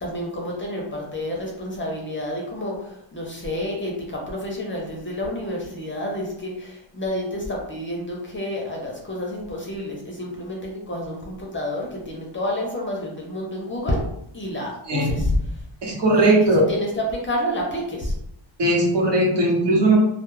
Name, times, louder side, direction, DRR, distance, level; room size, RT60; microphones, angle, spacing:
voice 1, 0.0-14.0 14.3-15.4 16.1-18.1, left 1 dB, 25° left, -2 dB, 0.5 m, -29 dB
voice 2, 15.8-16.6 18.6-20.0, right 1 dB, 65° right, -3 dB, 0.9 m, -18 dB
2.2 x 2.0 x 3.0 m, 0.78 s
wide cardioid pair, 120°, 46 cm